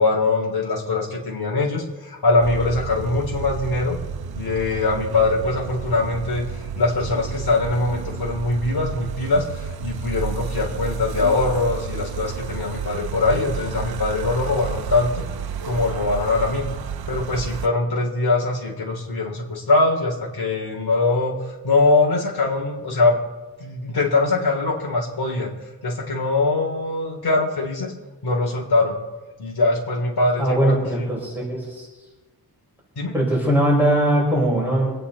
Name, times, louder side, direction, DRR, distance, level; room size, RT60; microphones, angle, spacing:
voice 1, 0.0-4.0 4.4-15.2 15.6-16.7 17.1-23.2 23.6-25.5 25.8-27.9 28.2-29.0 29.4-31.1 33.0-33.1, left 3 dB, 75° left, -1 dB, 3.5 m, -22 dB
sound 1, 2.4-17.7, right 7 dB, 70° right, 0.8 m, -31 dB
voice 2, 30.4-31.9 33.1-34.9, right 1 dB, 5° right, -5 dB, 5.9 m, -20 dB
26.5 x 8.9 x 4.2 m, 1.2 s
wide cardioid pair, 125°, 38 cm